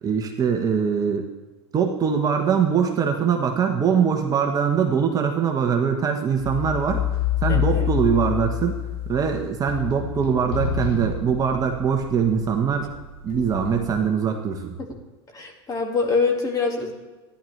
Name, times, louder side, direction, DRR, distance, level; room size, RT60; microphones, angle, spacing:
voice 1, 0.0-1.3 1.7-7.0 7.4-8.8 9.1-12.9 13.2-14.7, right 7 dB, 25° right, 3 dB, 1.2 m, -22 dB
sound 1, 6.4-14.0, left 8 dB, 65° left, 3.5 m, -28 dB
voice 2, 7.5-7.9 10.2-10.3 14.8-14.9 15.3-16.9, left 4 dB, 25° left, 2 dB, 2.2 m, -25 dB
14.0 x 10.5 x 3.3 m, 1.2 s
supercardioid pair, 115°, 14 cm